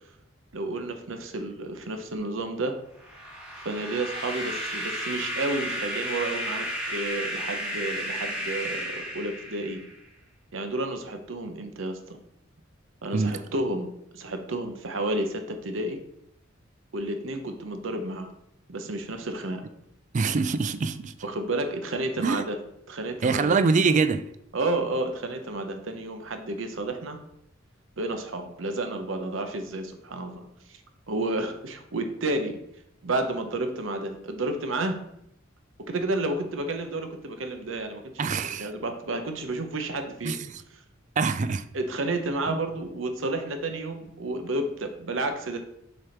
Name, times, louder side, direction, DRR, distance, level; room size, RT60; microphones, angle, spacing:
voice 1, 0.5-2.8 3.6-9.8 10.5-12.2 13.0-16.0 16.9-18.3 18.7-19.6 21.2-22.6 22.9-23.6 24.5-27.2 28.0-30.8 31.1-32.6 33.0-35.0 35.9-40.4 41.7-45.7, right 2 dB, 75° right, 0.8 m, -31 dB
sound 1, 3.0-10.0, equal, 5° right, 1.8 m, -33 dB
voice 2, 20.1-21.1 22.2-22.4 23.2-24.3 38.2-38.7 40.2-40.6 41.2-41.6 42.5-42.6, right 4 dB, 40° right, 0.4 m, -24 dB
6.6 x 3.5 x 4.4 m
head